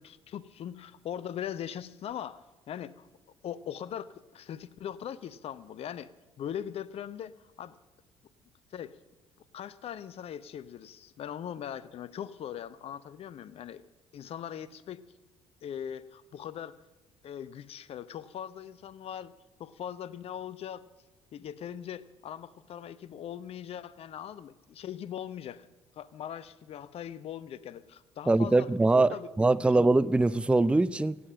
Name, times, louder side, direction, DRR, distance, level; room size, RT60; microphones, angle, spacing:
voice 1, 0.0-3.1 3.4-6.1 6.4-7.3 7.6-7.8 8.7-8.9 9.5-13.8 14.1-15.0 15.6-16.8 17.2-19.3 19.6-20.8 21.3-25.7 26.0-29.3 29.6-29.7, left 9 dB, 50° left, 0.7 m, -40 dB
voice 2, 28.3-31.2, right 2 dB, 10° right, 0.4 m, -23 dB
16.0 x 8.7 x 8.8 m
hypercardioid pair, 55°, 13 cm